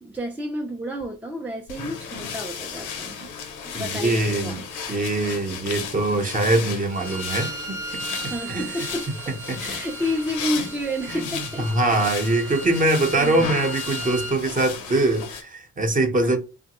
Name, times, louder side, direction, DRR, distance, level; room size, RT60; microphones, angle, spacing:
voice 1, 0.0-3.2 3.6-4.7 8.3-9.3 9.6-11.7 12.2-12.5 13.2-13.5 16.2-16.4, equal, 5° right, 0.4 m, -30 dB
sound 1, 1.7-15.4, left 6 dB, 90° left, 0.7 m, -35 dB
voice 2, 3.7-4.6 4.9-8.7 9.5-9.6 11.1-11.2 11.6-16.4, right 2 dB, 25° right, 0.8 m, -23 dB
Bowed string instrument, 6.9-14.4, right 3 dB, 90° right, 0.8 m, -37 dB
3.1 x 2.1 x 2.9 m
cardioid pair, 90°, 30 cm